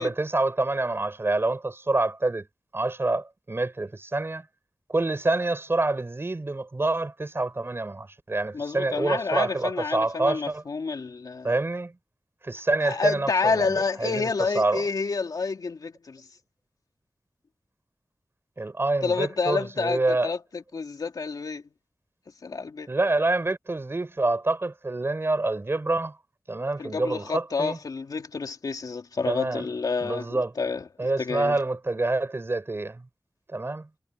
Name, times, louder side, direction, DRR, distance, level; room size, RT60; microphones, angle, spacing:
voice 1, 0.0-2.5 2.7-4.4 4.9-10.6 11.4-12.0 12.4-14.3 14.5-14.9 18.6-20.3 22.9-26.2 26.5-27.8 29.3-29.7 30.0-30.5 31.0-33.0 33.5-33.9, right 2 dB, 40° right, 4.4 m, -27 dB
voice 2, 8.5-11.5 12.8-16.2 19.0-21.6 22.4-22.9 26.8-30.8 31.2-31.6, left 4 dB, 90° left, 2.7 m, -29 dB
wide cardioid pair, 80°, 6 cm